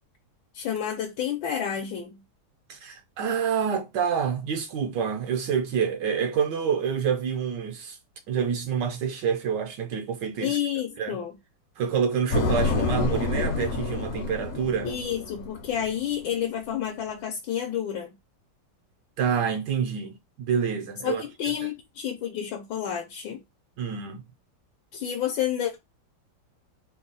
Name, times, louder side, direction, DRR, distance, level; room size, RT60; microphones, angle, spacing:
voice 1, 0.5-2.2 10.4-11.4 14.8-18.1 21.0-23.4 24.9-25.8, left 9 dB, 80° left, 1.4 m, -30 dB
voice 2, 2.7-8.0 8.3-10.6 11.0-11.2 11.8-14.9 19.2-21.2 23.8-24.2, right 7 dB, 70° right, 1.1 m, -27 dB
sound 1, 12.3-16.0, left 3 dB, 55° left, 1.0 m, -28 dB
3.4 x 2.3 x 3.8 m
omnidirectional pair, 2.1 m